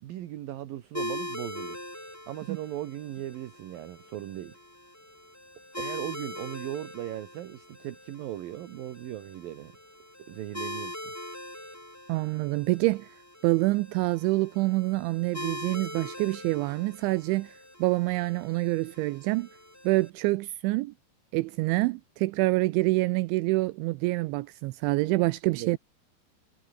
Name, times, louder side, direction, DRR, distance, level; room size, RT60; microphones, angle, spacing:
voice 1, 0.0-1.8 2.3-4.6 5.8-9.7 10.3-11.1 25.5-25.8, right 13 dB, 65° right, 2.5 m, -38 dB
sound 1, 0.9-20.1, left 1 dB, 5° left, 1.6 m, -42 dB
voice 2, 12.1-13.2 13.4-19.5 19.8-20.9 21.3-25.8, right 21 dB, 85° right, 2.9 m, -26 dB
omnidirectional pair, 5.6 m